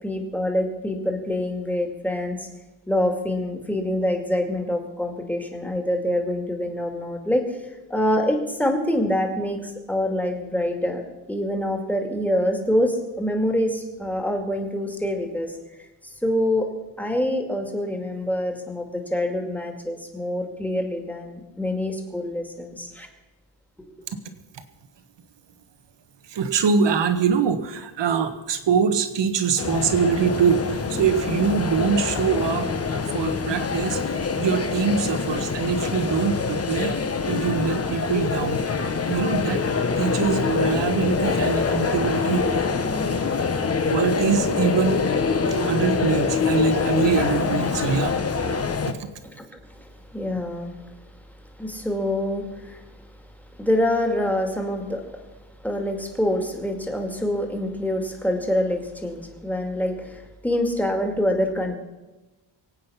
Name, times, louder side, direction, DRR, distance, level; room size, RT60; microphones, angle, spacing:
voice 1, 0.0-2.5 2.9-7.4 7.9-11.0 11.3-15.5 16.2-16.7 17.0-23.1 49.4-50.8 51.6-52.8 53.6-55.0 55.6-61.8, left 1 dB, 5° left, 3 dB, 2.3 m, -25 dB
voice 2, 26.3-32.7 33.1-37.0 37.3-38.6 39.1-39.6 40.0-42.4 43.9-45.0 45.6-48.2 48.9-49.1, right 6 dB, 70° right, 9 dB, 1.5 m, -23 dB
sound 1, 29.6-48.9, left 5 dB, 30° left, 1.2 m, -25 dB
23.5 x 8.8 x 5.8 m, 1.1 s
wide cardioid pair, 135°, 45 cm